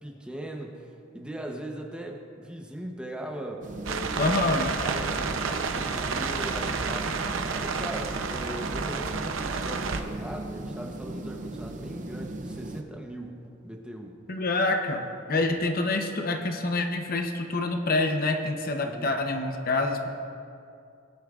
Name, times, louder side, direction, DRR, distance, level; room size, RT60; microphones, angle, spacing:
voice 1, 0.0-7.2 7.6-14.1 18.8-19.1, right 1 dB, 5° right, 1 dB, 0.8 m, -39 dB
sound 1, 3.6-12.8, right 2 dB, 40° right, 0.6 m, -38 dB
sound 2, 3.9-10.0, right 4 dB, 80° right, 0.7 m, -30 dB
voice 2, 4.2-4.7 14.3-20.1, left 2 dB, 45° left, 4 dB, 0.8 m, -27 dB
19.0 x 10.0 x 2.4 m, 2.5 s
head